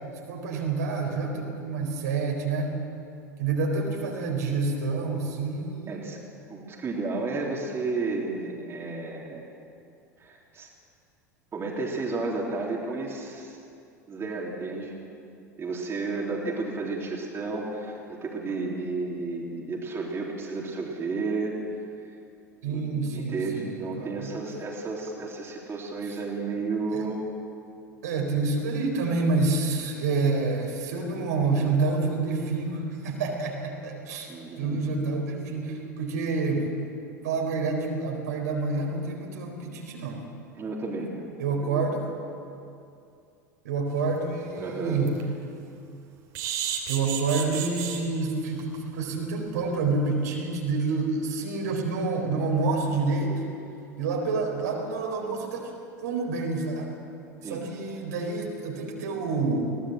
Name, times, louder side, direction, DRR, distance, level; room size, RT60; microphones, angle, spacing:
voice 1, 0.3-2.7 3.4-6.1 22.6-24.3 26.9-27.0 28.0-36.7 37.2-40.2 41.4-42.0 43.6-45.1 46.9-53.4 54.0-57.0 57.4-59.7, right 3 dB, 65° right, 1 dB, 4.2 m, -28 dB
voice 2, 5.9-6.2 6.5-9.5 10.2-10.7 11.5-13.6 14.1-14.9 15.6-21.5 22.6-27.2 34.3-35.1 40.5-41.3 41.6-41.9 44.6-45.1 57.4-57.7, right 3 dB, 25° right, -2 dB, 3.5 m, -32 dB
sound 1, 44.0-44.1 44.6-44.7 45.0-45.2 46.3-48.0 48.6-48.8 49.1-49.2 49.5-49.6, right 9 dB, 50° right, 3.2 m, -32 dB
22.0 x 17.5 x 7.7 m, 2.5 s
figure-of-eight pair, 80°, 9 cm